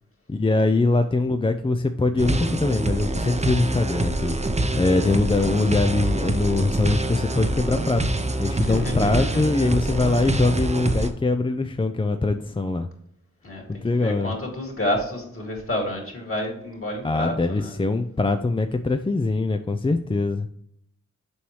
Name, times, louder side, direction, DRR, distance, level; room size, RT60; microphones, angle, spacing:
voice 1, 0.3-4.3 4.8-8.1 8.4-12.9 13.7-14.3 17.0-20.5, left 3 dB, 20° left, 7 dB, 0.4 m, -23 dB
sound 1, 2.2-11.1, right 2 dB, 20° right, 0.7 m, -25 dB
voice 2, 8.6-9.4 13.4-17.7, left 1 dB, 45° left, 0 dB, 2.5 m, -30 dB
7.1 x 4.7 x 3.1 m, 0.73 s
cardioid pair, 50°, 30 cm